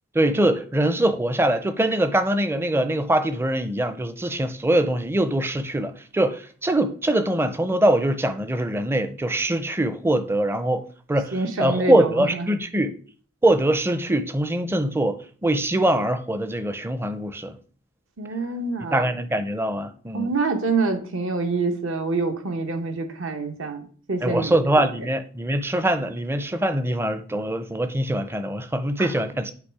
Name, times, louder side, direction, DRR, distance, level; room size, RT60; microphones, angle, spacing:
voice 1, 0.1-10.8 11.1-12.9 13.4-15.2 15.4-17.6 18.9-20.3 24.2-29.5, right 1 dB, 10° right, 0.5 m, -23 dB
voice 2, 11.3-12.5 18.2-19.1 20.1-24.8 29.0-29.1, right 3 dB, 65° right, 1.0 m, -26 dB
8.3 x 3.1 x 4.7 m
head